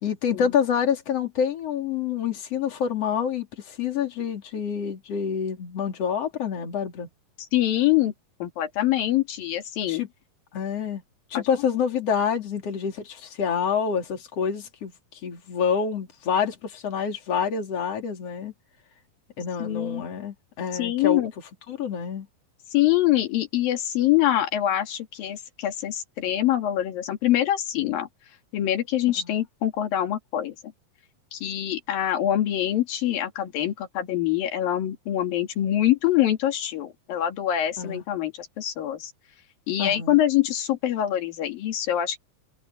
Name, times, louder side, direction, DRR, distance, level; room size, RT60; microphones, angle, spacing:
voice 1, 0.0-7.1 9.9-10.1 10.5-11.0 11.3-14.9 15.2-18.5 19.4-21.2 21.7-22.3 29.2-29.3 37.8-38.0 39.8-40.2, left 7 dB, 45° left, 4.1 m, -27 dB
voice 2, 7.5-8.1 8.4-10.0 11.3-11.4 19.6-20.0 20.7-21.3 22.7-28.1 28.5-30.6 31.3-39.1 39.7-42.2, left 12 dB, 85° left, 4.0 m, -24 dB
omnidirectional pair, 4.0 m